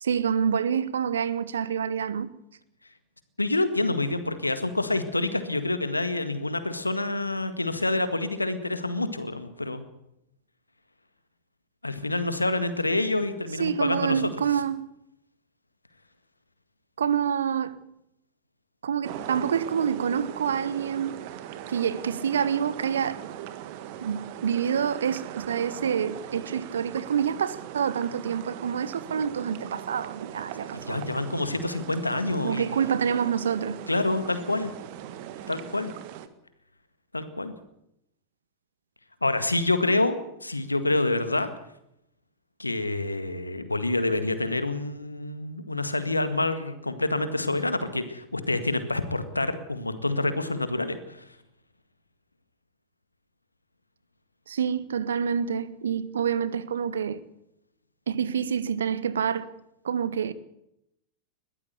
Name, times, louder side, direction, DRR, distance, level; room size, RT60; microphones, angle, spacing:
voice 1, 0.0-2.3 13.6-14.9 17.0-17.8 18.8-21.2 21.7-23.2 24.0-31.2 32.4-33.9 54.5-57.3 58.1-59.5 59.8-60.3, right 7 dB, 65° right, 1.1 m, -27 dB
voice 2, 3.4-9.8 11.8-14.3 30.7-32.8 33.9-34.7 35.5-35.9 37.1-37.5 39.2-41.5 42.6-51.2, left 2 dB, 85° left, 1.8 m, -27 dB
sound 1, 19.0-36.3, right 11 dB, 50° right, 1.5 m, -40 dB
21.5 x 14.5 x 8.3 m
figure-of-eight pair, 90°, 0 cm